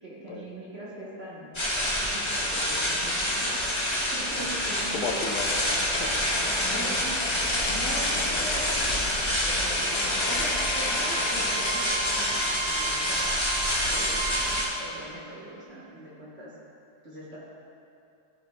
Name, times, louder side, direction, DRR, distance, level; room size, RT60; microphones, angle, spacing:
voice 1, 0.0-5.1 6.7-7.2 7.7-13.3 13.9-16.5 17.0-17.4, right 1 dB, 45° right, -7 dB, 0.9 m, -41 dB
sound 1, 1.5-14.7, equal, 25° left, 0.6 m, -27 dB
voice 2, 4.0-4.6 4.9-6.7 8.3-8.4 14.0-14.2, left 4 dB, 90° left, 3 dB, 1.5 m, -37 dB
sound 2, 5.2-11.8, left 4 dB, 70° left, 1.1 m, -34 dB
Bowed string instrument, 9.7-14.7, right 3 dB, 70° right, 1.0 m, -34 dB
12.0 x 4.9 x 2.2 m, 2.7 s
omnidirectional pair, 2.1 m